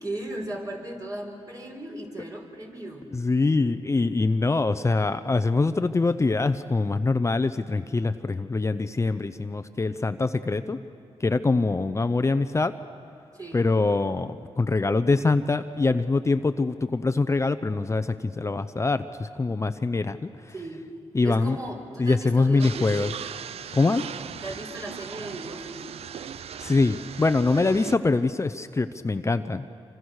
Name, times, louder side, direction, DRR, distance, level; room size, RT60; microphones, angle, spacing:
voice 1, 0.0-3.1 13.3-13.7 20.5-20.9 21.2-22.9 23.6-23.8 24.4-25.9 27.5-27.8, right 1 dB, 35° right, 1 dB, 4.7 m, -37 dB
voice 2, 3.1-10.8 11.2-12.8 13.5-20.5 21.1-21.6 22.0-23.1 23.7-24.0 26.6-29.7, left 3 dB, 25° left, 10 dB, 0.7 m, -24 dB
sound 1, 22.6-28.0, right 8 dB, 70° right, 0.6 m, -38 dB
26.5 x 25.0 x 6.5 m, 2.4 s
cardioid pair, 70°, 11 cm